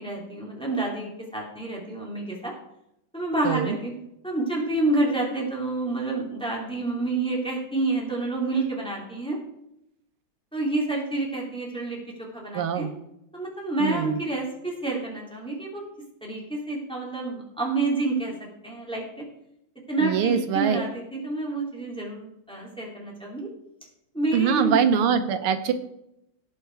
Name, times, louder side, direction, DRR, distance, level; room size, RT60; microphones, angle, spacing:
voice 1, 0.0-2.5 3.1-3.9 4.2-9.4 10.5-12.9 13.3-15.8 16.2-19.2 19.9-23.5 24.1-24.8, right 2 dB, ahead, -3 dB, 3.0 m, -28 dB
voice 2, 3.4-3.8 12.5-12.9 13.8-14.2 20.0-20.8 24.3-25.7, right 7 dB, 90° right, 8 dB, 1.8 m, -23 dB
17.5 x 5.9 x 4.7 m, 0.80 s
omnidirectional pair, 2.3 m